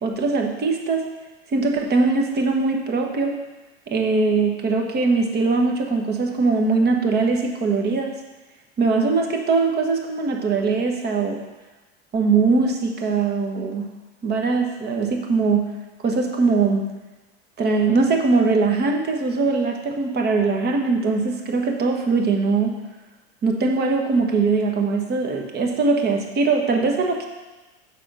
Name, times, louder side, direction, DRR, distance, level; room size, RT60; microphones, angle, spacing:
voice 1, 0.0-1.1 1.5-3.4 3.9-8.2 8.8-11.4 12.1-13.9 14.2-15.7 16.0-16.9 17.6-22.8 23.4-27.3, right 4 dB, 30° right, 3 dB, 1.3 m, -21 dB
6.6 x 5.6 x 6.3 m, 1.1 s
hypercardioid pair, 110°, 33 cm